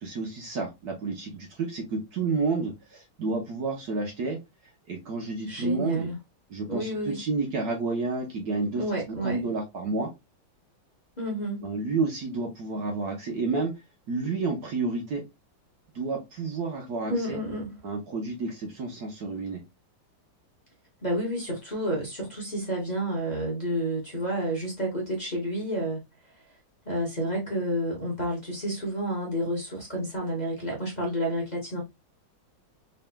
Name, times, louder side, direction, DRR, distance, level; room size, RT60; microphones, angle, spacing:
voice 1, 0.0-4.4 4.9-6.1 6.5-10.1 11.6-13.7 14.1-15.2 15.9-17.4 17.8-19.6, right 3 dB, 60° right, 1.2 m, -30 dB
voice 2, 5.5-6.2 6.7-7.2 8.8-9.4 11.2-11.6 17.1-17.8 21.0-26.0 26.8-31.8, equal, 25° left, 1.1 m, -30 dB
4.0 x 4.0 x 2.2 m
omnidirectional pair, 2.2 m